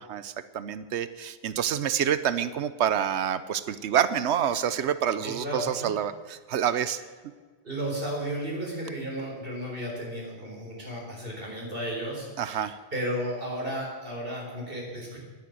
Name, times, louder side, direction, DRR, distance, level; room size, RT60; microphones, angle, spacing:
voice 1, 0.0-7.0 12.4-12.8, right 9 dB, 85° right, 13 dB, 1.0 m, -27 dB
voice 2, 5.2-5.9 7.6-15.2, equal, 55° right, -2 dB, 4.2 m, -34 dB
10.5 x 10.0 x 9.3 m, 1.5 s
omnidirectional pair, 1.1 m